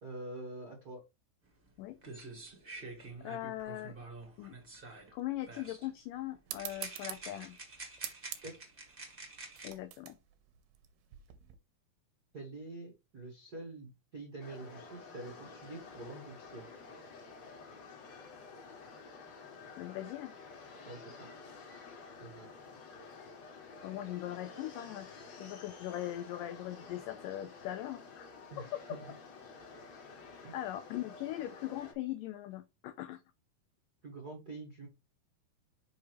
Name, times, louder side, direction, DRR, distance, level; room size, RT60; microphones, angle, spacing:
voice 1, 0.0-1.0 8.4-8.5 12.3-16.7 20.8-21.3 22.2-22.5 28.5-29.0 30.4-30.6 34.0-34.9, right 2 dB, 55° right, 1.0 m, -46 dB
sound 1, 1.7-1.8 2.0-5.1 5.5-5.9 6.6-9.7, right 3 dB, 35° right, 0.8 m, -48 dB
voice 2, 3.2-4.0 4.4-4.6 5.1-7.6 9.6-10.2 19.8-20.3 23.8-25.1 25.4-29.0 30.5-33.2, left 14 dB, 90° left, 1.9 m, -40 dB
sound 2, 6.5-11.5, right 12 dB, 75° right, 2.6 m, -47 dB
sound 3, 14.4-31.9, left 4 dB, 50° left, 2.6 m, -51 dB
6.5 x 5.7 x 3.1 m
omnidirectional pair, 4.4 m